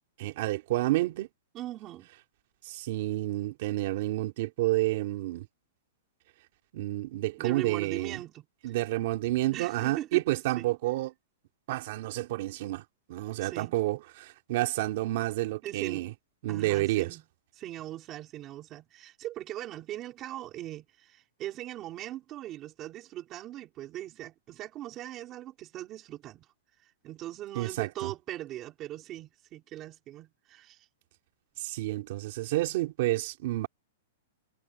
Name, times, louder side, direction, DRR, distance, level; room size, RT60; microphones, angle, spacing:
voice 1, 0.2-1.3 2.6-5.5 6.7-8.2 8.6-11.1 11.7-16.1 16.4-17.1 27.5-28.1 31.6-33.7, right 17 dB, 40° right, 3.1 m, -30 dB
voice 2, 1.5-2.1 7.4-8.5 9.5-10.2 10.6-10.7 13.4-13.7 15.6-16.1 16.5-17.2 17.5-26.5 27.0-30.8, right 13 dB, 20° right, 4.2 m, -40 dB
supercardioid pair, 180°, 0 cm